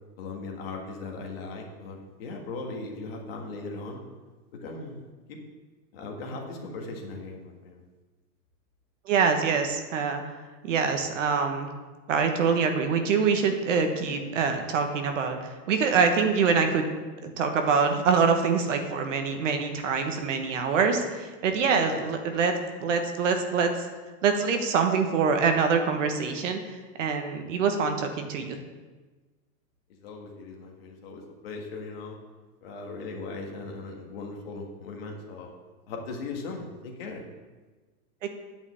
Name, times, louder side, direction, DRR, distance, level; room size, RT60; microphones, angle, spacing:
voice 1, 0.2-4.0 4.6-5.4 5.9-7.8 21.7-22.4 30.0-32.2 32.6-35.5 35.9-37.3, left 3 dB, 40° left, 1 dB, 1.8 m, -38 dB
voice 2, 9.1-10.2 10.6-11.7 12.1-16.8 17.2-22.5 22.8-23.9 24.2-26.6 27.0-28.6 38.2-38.3, right 5 dB, 50° right, 5 dB, 1.2 m, -25 dB
9.7 x 5.5 x 8.2 m, 1.3 s
supercardioid pair, 180°, 47 cm